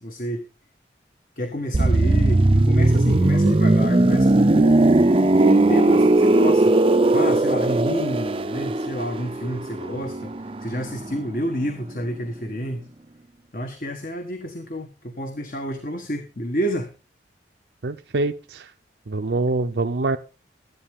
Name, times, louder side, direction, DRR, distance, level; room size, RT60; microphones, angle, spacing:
voice 1, 0.0-0.4 1.4-4.8 5.2-6.7 7.1-12.9 13.5-16.9, equal, 50° left, 5 dB, 1.4 m, -29 dB
sound 1, 1.7-11.4 11.7-11.9, right 2 dB, 30° right, 0.5 m, -18 dB
voice 2, 17.8-18.7 19.1-20.2, right 3 dB, 70° right, 6 dB, 0.6 m, -24 dB
13.5 x 11.5 x 3.6 m, 0.32 s
head